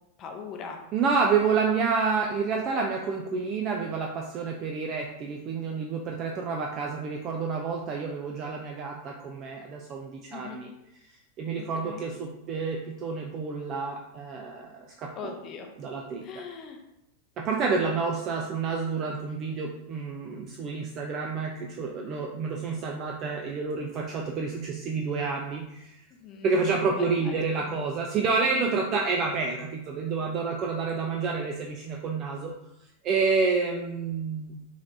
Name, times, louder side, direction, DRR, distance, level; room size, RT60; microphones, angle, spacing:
voice 1, 0.2-0.8 10.3-10.6 11.6-12.0 15.2-15.7 16.2-16.8 26.2-26.5 27.0-27.3 27.6-27.7 28.5-28.8, left 5 dB, 35° left, 3 dB, 0.6 m, -40 dB
voice 2, 0.9-10.7 11.4-15.4 15.8-16.4 17.4-26.0 26.4-32.5 33.0-34.6, right 4 dB, 35° right, 1 dB, 0.4 m, -29 dB
4.8 x 3.2 x 2.7 m, 0.86 s
figure-of-eight pair, 90°, 0 cm